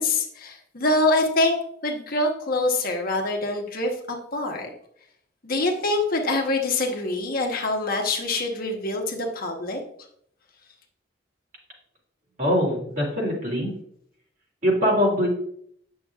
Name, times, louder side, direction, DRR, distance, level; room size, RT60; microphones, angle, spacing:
voice 1, 0.0-1.6 1.8-4.7 5.4-9.8, left 2 dB, 50° left, 2 dB, 1.1 m, -25 dB
voice 2, 12.4-13.7 14.6-15.3, equal, 45° right, -1 dB, 2.6 m, -22 dB
8.7 x 6.4 x 2.4 m, 0.67 s
head